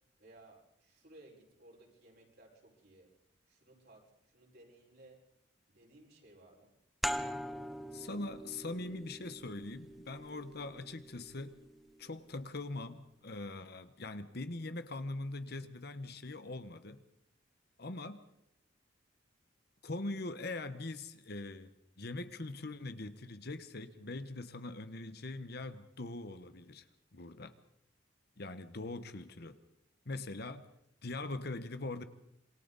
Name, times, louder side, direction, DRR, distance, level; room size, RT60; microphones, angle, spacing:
voice 1, 0.2-3.1 3.5-5.2 5.7-6.7, right 2 dB, 60° right, 5.4 m, -60 dB
sound 1, 7.0-12.3, equal, ahead, 0.7 m, -43 dB
voice 2, 7.9-11.6 12.0-17.1 17.8-18.3 19.8-21.7 22.0-26.9 27.1-27.5 28.4-29.6 30.0-30.7 31.0-32.0, left 2 dB, 60° left, 1.2 m, -42 dB
27.0 x 23.5 x 4.1 m
head